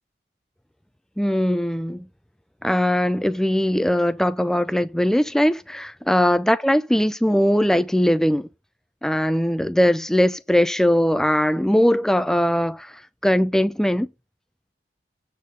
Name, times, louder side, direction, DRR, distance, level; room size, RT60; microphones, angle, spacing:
voice 1, 1.2-2.1 2.6-8.5 9.0-12.9 13.2-14.1, equal, 5° left, 0.3 m, -20 dB
8.5 x 3.7 x 5.1 m
head